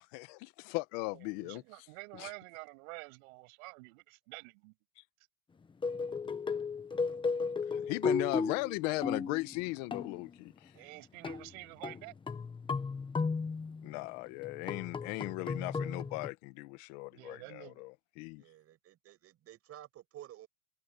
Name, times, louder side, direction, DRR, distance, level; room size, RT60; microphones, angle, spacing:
voice 1, 0.0-1.6 2.1-2.3 7.7-10.7 13.8-18.4, left 23 dB, 55° left, 1.4 m, -37 dB
voice 2, 1.2-4.7 10.7-12.1 17.1-17.8, right 30 dB, 60° right, 6.5 m, -49 dB
sound 1, 5.8-10.4 11.2-11.6 11.8-14.0 14.4-16.3, left 5 dB, 10° left, 1.2 m, -35 dB
voice 3, 18.4-20.5, right 13 dB, 30° right, 6.4 m, -52 dB
open air
supercardioid pair, 160°, 45 cm